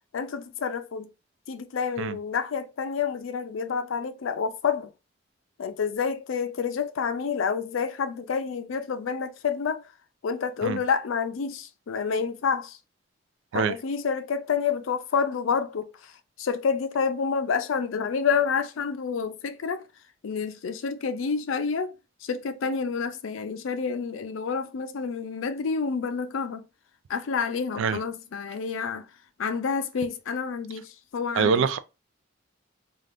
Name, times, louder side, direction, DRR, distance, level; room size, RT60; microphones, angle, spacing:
voice 1, 0.1-1.1 1.5-4.9 5.6-9.8 10.2-12.8 13.5-16.1 16.4-19.8 20.2-21.9 22.2-26.6 27.1-29.1 29.4-31.6, left 6 dB, 85° left, 0.4 m, -28 dB
voice 2, 31.3-31.8, right 5 dB, 75° right, 0.3 m, -24 dB
3.4 x 2.3 x 2.5 m
head